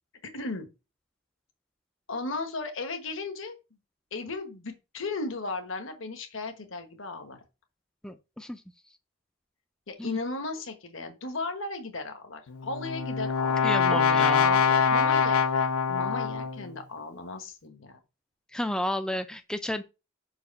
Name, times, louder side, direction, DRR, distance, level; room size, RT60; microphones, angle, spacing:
voice 1, 0.3-0.7 2.1-3.6 4.1-7.4 9.9-18.0, left 3 dB, 60° left, 1.2 m, -36 dB
voice 2, 8.0-8.6 10.0-10.2 13.6-14.6 18.5-19.8, left 1 dB, 5° left, 0.3 m, -32 dB
Brass instrument, 12.5-16.7, left 6 dB, 85° left, 0.6 m, -24 dB
5.2 x 4.7 x 5.2 m
head